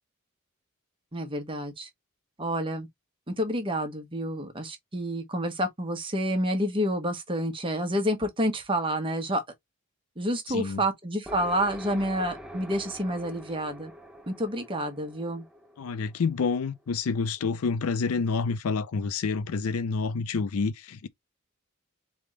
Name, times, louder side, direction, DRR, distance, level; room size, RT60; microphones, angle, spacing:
voice 1, 1.1-1.9 2.4-2.9 3.3-9.4 10.2-13.9 14.3-15.4, equal, 25° right, 1.1 m, -29 dB
voice 2, 10.5-10.8 15.8-21.1, left 4 dB, 80° left, 0.5 m, -28 dB
sound 1, 11.2-16.9, equal, 5° right, 0.6 m, -45 dB
3.7 x 3.5 x 3.2 m
head